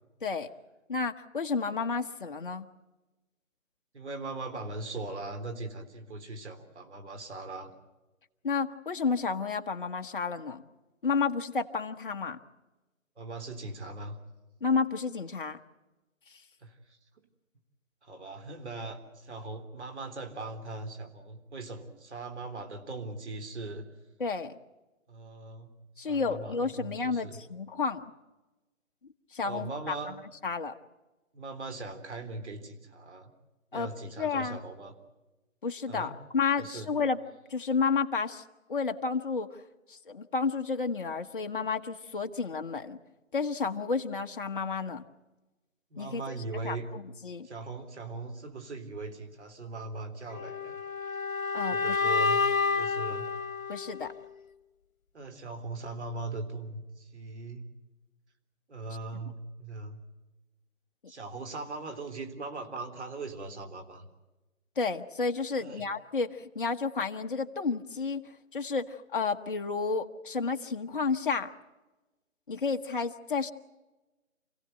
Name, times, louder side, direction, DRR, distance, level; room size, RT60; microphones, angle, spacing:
voice 1, 0.9-2.7 8.4-10.6 11.0-12.4 14.6-15.6 24.2-24.5 26.0-28.0 29.3-29.9 30.4-30.8 33.7-33.9 34.2-34.6 35.6-37.2 37.5-38.4 38.7-39.5 39.9-43.0 43.3-45.1 46.0-46.2 46.6-47.5 51.5-52.0 53.7-54.1 59.1-59.2 64.8-68.2 68.5-71.5 72.5-73.5, left 4 dB, 40° left, 5 dB, 1.2 m, -31 dB
voice 2, 3.9-7.7 13.2-14.2 16.6-17.2 18.0-23.9 25.1-25.7 26.0-27.4 29.4-30.2 31.3-33.3 33.7-34.9 35.9-36.1 36.6-36.9 45.9-46.9 47.4-50.8 51.7-52.4 52.8-53.3 55.1-57.7 58.7-60.0 61.1-64.1 65.5-65.8, right 3 dB, 55° right, 6 dB, 3.5 m, -40 dB
sound 1, 50.3-54.3, left 4 dB, 85° left, 1.1 m, -29 dB
28.0 x 16.5 x 7.9 m, 1.1 s
figure-of-eight pair, 160°, 41 cm